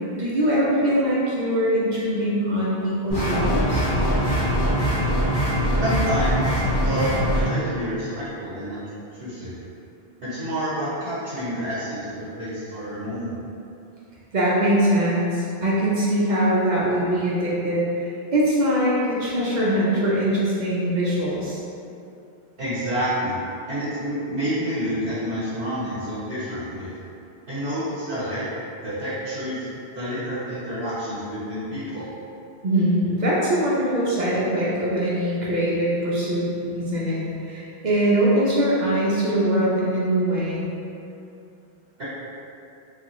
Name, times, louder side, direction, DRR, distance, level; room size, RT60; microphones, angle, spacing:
voice 1, 0.0-3.8 14.3-21.6 32.6-40.7, right 1 dB, 55° right, -6 dB, 0.6 m, -22 dB
sound 1, 3.1-7.5, equal, 25° left, 1.1 m, -22 dB
voice 2, 5.8-7.1 7.3-8.8 9.1-9.5 10.2-13.5 22.6-26.9 27.5-28.4 28.8-32.2 42.0-42.1, equal, 70° right, -10 dB, 1.1 m, -29 dB
3.4 x 2.3 x 2.9 m, 2.6 s
omnidirectional pair, 1.1 m